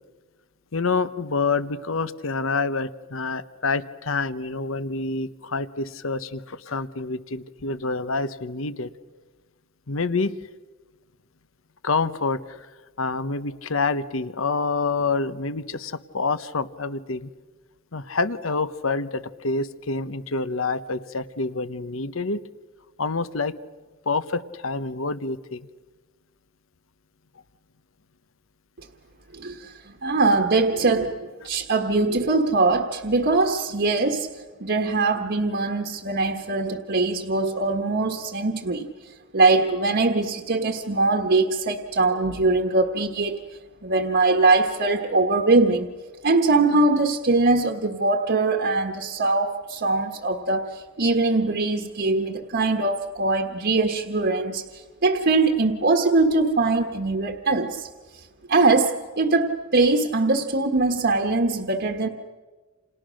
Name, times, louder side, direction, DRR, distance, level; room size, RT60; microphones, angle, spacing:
voice 1, 0.7-8.9 9.9-10.3 11.8-12.4 13.0-17.3 17.9-22.4 23.0-23.5 24.1-25.7, left 3 dB, 70° left, 14 dB, 1.1 m, -27 dB
voice 2, 29.3-43.4 43.8-45.9 46.2-57.9 58.5-62.1, right 3 dB, 55° right, 4 dB, 1.5 m, -22 dB
29.5 x 28.5 x 6.5 m, 1.3 s
head